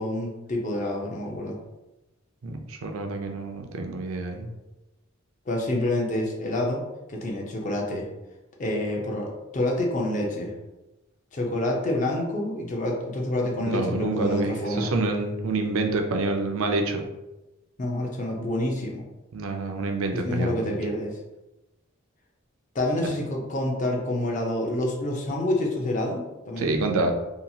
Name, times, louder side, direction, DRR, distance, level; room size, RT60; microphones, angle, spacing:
voice 1, 0.0-1.6 5.5-6.8 7.1-8.1 8.6-10.6 11.3-14.9 17.8-19.0 20.1-21.2 22.7-26.8, left 1 dB, 35° left, 0 dB, 0.5 m, -28 dB
voice 2, 2.4-4.5 13.6-17.0 19.3-20.8 26.6-27.1, right 2 dB, 75° right, 4 dB, 0.4 m, -27 dB
2.8 x 2.3 x 2.7 m, 1.0 s
head